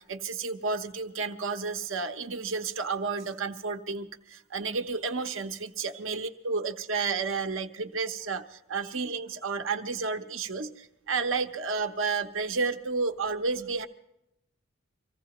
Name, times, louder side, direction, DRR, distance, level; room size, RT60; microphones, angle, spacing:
voice 1, 0.1-13.9, right 4 dB, 65° right, 7 dB, 1.0 m, -31 dB
25.0 x 15.5 x 3.0 m, 0.84 s
head